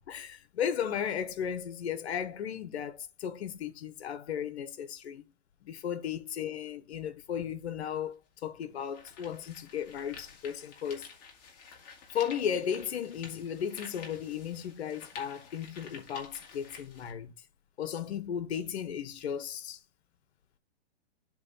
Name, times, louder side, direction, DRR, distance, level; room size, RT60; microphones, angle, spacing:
voice 1, 0.1-5.2 5.6-11.1 12.1-17.3 17.8-19.8, left 8 dB, 65° left, 1.3 m, -35 dB
sound 1, 7.9-8.0 8.6-17.1, left 5 dB, 25° left, 1.9 m, -50 dB
7.7 x 3.2 x 5.5 m
hypercardioid pair, 150°, 35 cm